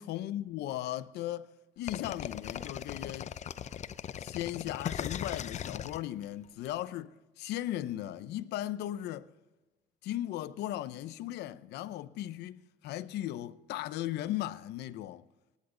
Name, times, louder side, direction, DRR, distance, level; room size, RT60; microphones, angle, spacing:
voice 1, 0.0-1.5 1.8-3.3 4.1-9.3 10.0-15.3, left 13 dB, 80° left, 0.8 m, -37 dB
sound 1, 1.9-6.7, left 9 dB, 45° left, 0.7 m, -38 dB
26.0 x 10.0 x 3.9 m
cardioid pair, 110°, 17 cm